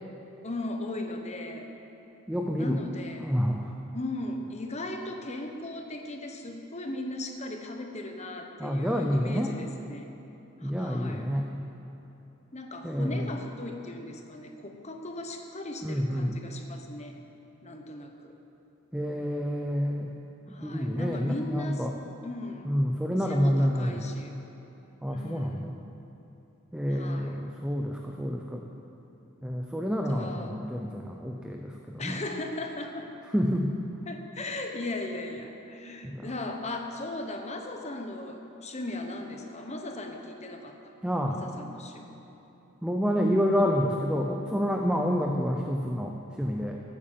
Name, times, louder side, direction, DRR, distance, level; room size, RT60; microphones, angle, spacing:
voice 1, 0.4-1.7 2.6-3.3 3.9-10.1 10.6-11.3 12.5-17.2 17.6-18.3 20.5-21.9 22.2-22.7 23.2-24.3 25.1-25.7 26.9-27.4 30.1-30.6 32.0-33.1 34.0-40.9 41.2-42.1, left 2 dB, 30° left, 4 dB, 1.1 m, -37 dB
voice 2, 2.3-2.8 3.2-3.7 8.6-9.5 10.6-11.5 12.8-13.3 15.8-16.4 18.9-20.2 20.5-21.9 22.6-24.1 25.0-25.7 26.7-28.7 29.4-32.2 33.3-33.7 36.0-36.3 41.0-41.4 42.8-46.8, equal, 5° right, 1 dB, 0.6 m, -28 dB
14.0 x 8.7 x 7.5 m, 3.0 s
head